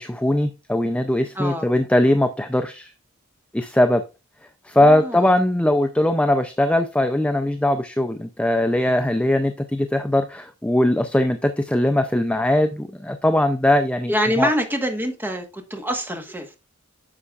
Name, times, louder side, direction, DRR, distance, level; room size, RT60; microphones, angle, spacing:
voice 1, 0.0-2.9 3.5-4.0 4.6-14.1 14.4-14.5, left 1 dB, 5° left, 0.4 m, -20 dB
voice 2, 1.3-1.7 4.8-5.3 14.1-16.6, equal, 10° right, 1.3 m, -25 dB
9.7 x 6.7 x 2.4 m
head